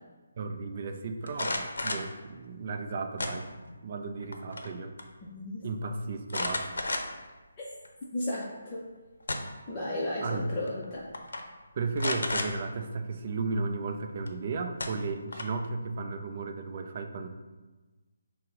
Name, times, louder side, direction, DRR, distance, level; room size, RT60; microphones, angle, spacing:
voice 1, 0.4-3.5 3.8-4.9 5.6-6.8 10.2-10.7 11.7-17.3, right 3 dB, 35° right, 6 dB, 0.4 m, -34 dB
sound 1, 1.3-2.1 3.2-3.8 4.2-4.7 5.0-5.1 6.3-7.3 7.8-7.9 9.0-9.7 10.7-10.8 11.1-11.4 12.0-12.5 14.3-14.4 14.8-15.6, left 2 dB, 80° left, 0.6 m, -32 dB
voice 2, 5.2-5.6 8.1-8.8 9.7-11.1, left 1 dB, 20° left, -6 dB, 0.5 m, -34 dB
5.7 x 2.0 x 3.6 m, 1.2 s
hypercardioid pair, 170°, 0 cm